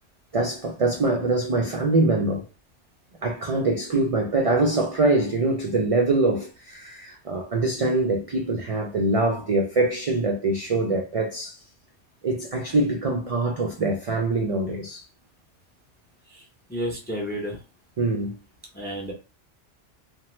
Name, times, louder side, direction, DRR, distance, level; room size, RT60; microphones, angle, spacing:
voice 1, 0.3-2.4 3.2-11.6 12.2-15.0 18.0-18.3, right 2 dB, 65° right, 0.3 m, -24 dB
voice 2, 16.3-17.6 18.7-19.1, equal, 15° left, 0.4 m, -32 dB
2.9 x 2.1 x 3.0 m
omnidirectional pair, 1.2 m